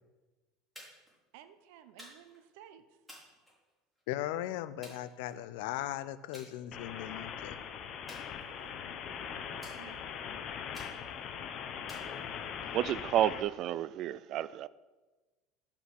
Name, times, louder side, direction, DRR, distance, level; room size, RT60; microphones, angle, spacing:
sound 1, 0.8-1.2 2.0-2.5 3.1-4.0 4.8-5.6 6.3-6.5 6.9-7.3 8.1-8.9 9.6-10.2 10.7-11.3 11.9-12.7, equal, ahead, 3.9 m, -54 dB
voice 1, 1.3-2.8 8.4-10.1, right 10 dB, 75° right, 0.8 m, -55 dB
voice 2, 4.1-7.5, left 13 dB, 75° left, 0.6 m, -38 dB
sound 2, 6.7-13.4, left 7 dB, 40° left, 0.9 m, -41 dB
voice 3, 12.7-14.7, right 11 dB, 45° right, 0.4 m, -31 dB
11.5 x 5.9 x 6.1 m
supercardioid pair, 135°, 0 cm